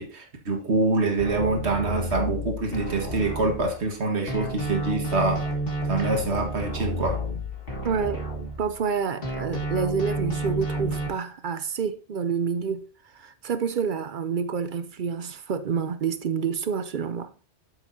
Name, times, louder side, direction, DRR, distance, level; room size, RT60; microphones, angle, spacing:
voice 1, 0.0-5.5 5.9-7.2, right 3 dB, 75° right, 1.8 m, -25 dB
sound 1, 1.2-4.0 4.3-8.9 9.2-11.1, right 1 dB, 55° left, 1.9 m, -31 dB
voice 2, 7.8-8.3 8.6-12.9 13.1-17.3, right 6 dB, 55° right, 0.6 m, -28 dB
8.0 x 7.1 x 2.7 m
omnidirectional pair, 1.1 m